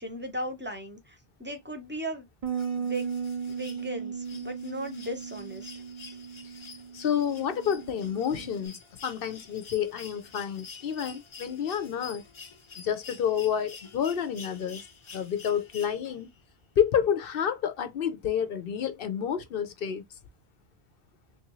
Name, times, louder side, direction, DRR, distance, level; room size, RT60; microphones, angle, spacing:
voice 1, 0.0-2.3 2.7-5.7, right 1 dB, 10° right, 0.8 m, -37 dB
Bass guitar, 2.4-8.7, right 6 dB, 50° right, 0.4 m, -36 dB
sound 1, 2.5-16.4 17.8-17.9, left 5 dB, 35° left, 0.5 m, -49 dB
voice 2, 6.9-12.2 12.8-14.8 15.1-16.3 16.8-20.0, left 8 dB, 65° left, 0.8 m, -29 dB
3.5 x 2.6 x 3.0 m
omnidirectional pair, 1.1 m